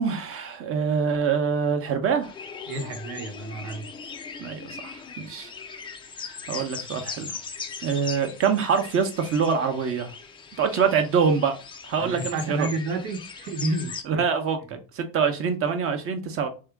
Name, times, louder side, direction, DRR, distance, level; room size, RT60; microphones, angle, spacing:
voice 1, 0.0-2.3 4.4-5.5 6.3-7.4 7.8-10.1 10.6-11.6 11.8-12.7 14.1-16.5, right 6 dB, 40° right, 0.8 m, -25 dB
sound 1, 2.2-14.0, left 5 dB, 15° left, 0.3 m, -39 dB
voice 2, 2.7-3.9 12.0-14.2 14.7-14.8, right 2 dB, 80° right, 1.2 m, -30 dB
3.6 x 2.8 x 3.4 m
cardioid pair, 135°, 36 cm